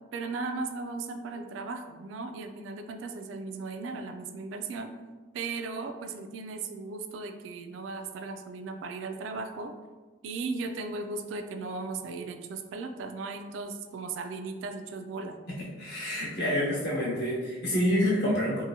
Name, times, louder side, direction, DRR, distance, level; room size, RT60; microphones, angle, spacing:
voice 1, 0.1-4.9 5.3-9.7 10.2-15.4, right 3 dB, 85° right, 7 dB, 0.3 m, -36 dB
voice 2, 15.8-18.6, equal, 60° left, -6 dB, 1.0 m, -27 dB
2.8 x 2.5 x 2.7 m, 1.3 s
head